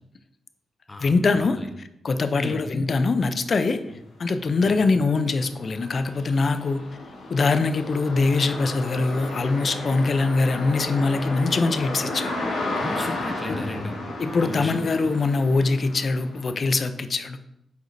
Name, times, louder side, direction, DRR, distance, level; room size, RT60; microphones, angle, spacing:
voice 1, 1.0-1.6 2.0-3.8 4.2-6.8 7.3-12.3 14.2-17.4, left 3 dB, 50° left, 10 dB, 0.5 m, -23 dB
sound 1, 3.4-3.5 4.0-16.8, left 2 dB, 80° left, 1.9 m, -33 dB
voice 2, 12.7-13.9 14.4-14.7, left 2 dB, 20° left, 4 dB, 1.1 m, -34 dB
8.1 x 4.9 x 2.7 m, 0.82 s
cardioid pair, 75°, 0 cm